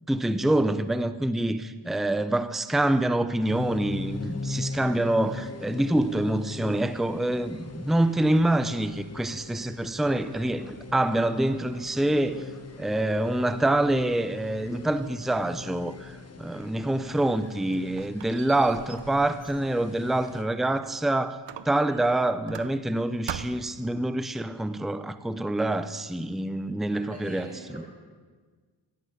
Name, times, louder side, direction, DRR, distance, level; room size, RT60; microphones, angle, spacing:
voice 1, 0.1-12.5 12.8-21.4 21.6-27.5 27.7-27.8, right 1 dB, ahead, 12 dB, 0.7 m, -26 dB
sound 1, 3.5-20.4, left 3 dB, 35° left, 1.4 m, -40 dB
Squeak, 17.2-21.0 21.5-23.0 23.3-23.8, right 10 dB, 85° right, 0.7 m, -42 dB
voice 2, 26.9-27.9, right 1 dB, 20° right, -2 dB, 6.5 m, -44 dB
13.5 x 11.0 x 8.6 m, 1.5 s
cardioid pair, 75°, 43 cm